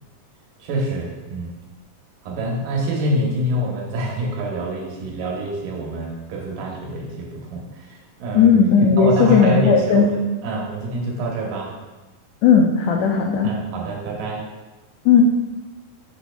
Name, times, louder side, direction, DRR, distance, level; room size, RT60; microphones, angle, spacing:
voice 1, 0.6-1.5 2.2-8.5 9.0-10.1 10.4-11.7 13.4-14.4, right 1 dB, 85° right, -1 dB, 2.8 m, -26 dB
voice 2, 8.3-10.1 12.4-13.5 15.0-15.2, left 6 dB, 85° left, 2 dB, 1.5 m, -15 dB
8.4 x 6.0 x 2.3 m, 1.2 s
omnidirectional pair, 3.8 m